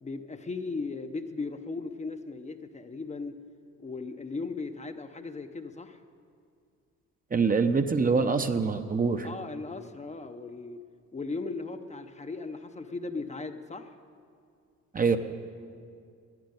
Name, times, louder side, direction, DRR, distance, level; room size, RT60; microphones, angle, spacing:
voice 1, 0.0-3.4 3.8-6.0 9.2-10.8 11.1-13.9, left 3 dB, 25° left, 7 dB, 0.7 m, -37 dB
voice 2, 7.3-9.3 14.9-15.2, right 4 dB, 30° right, 8 dB, 0.7 m, -24 dB
10.5 x 9.6 x 9.7 m, 2.3 s
cardioid pair, 90°, 30 cm